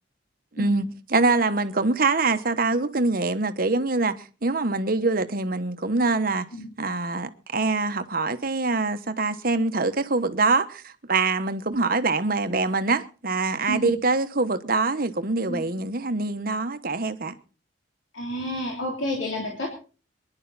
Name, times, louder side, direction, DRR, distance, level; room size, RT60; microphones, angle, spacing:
voice 1, 0.5-6.5 6.8-17.3, right 3 dB, 45° right, 1.1 m, -24 dB
voice 2, 13.7-14.0 15.5-15.8 18.1-19.7, equal, 75° left, 3.1 m, -30 dB
24.5 x 11.0 x 4.0 m
head